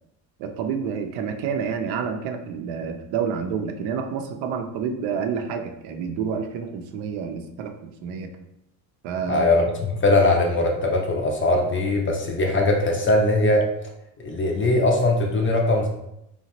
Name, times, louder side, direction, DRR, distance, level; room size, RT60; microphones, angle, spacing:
voice 1, 0.4-8.3 9.0-9.7, right 6 dB, 65° right, 5 dB, 0.6 m, -29 dB
voice 2, 9.3-13.7 14.2-15.9, left 2 dB, 25° left, 1 dB, 0.5 m, -20 dB
2.8 x 2.2 x 2.9 m, 0.81 s
supercardioid pair, 80°, 50 cm